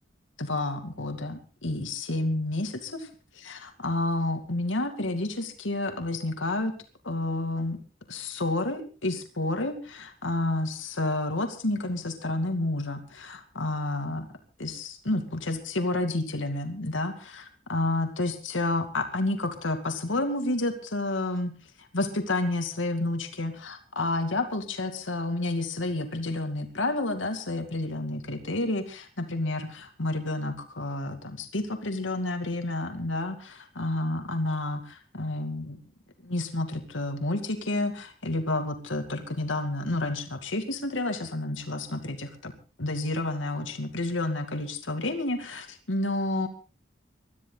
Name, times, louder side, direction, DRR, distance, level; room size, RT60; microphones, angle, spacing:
voice 1, 0.4-3.1 3.4-6.7 7.0-7.8 8.1-14.3 14.6-21.5 21.9-35.8 36.2-42.5 42.8-46.5, left 2 dB, 90° left, 6 dB, 2.4 m, -30 dB
22.0 x 13.5 x 3.9 m, 0.35 s
head